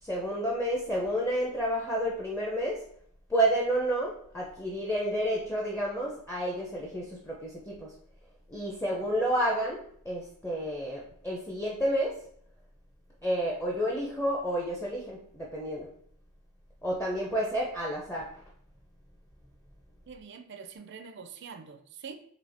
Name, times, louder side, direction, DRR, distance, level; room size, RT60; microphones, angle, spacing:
voice 1, 0.0-2.8 3.3-7.9 8.5-12.2 13.2-15.9 16.8-18.3, right 1 dB, 10° left, -3 dB, 0.6 m, -30 dB
voice 2, 20.1-22.1, right 6 dB, 55° right, 7 dB, 0.4 m, -45 dB
3.9 x 3.2 x 3.4 m, 0.64 s
head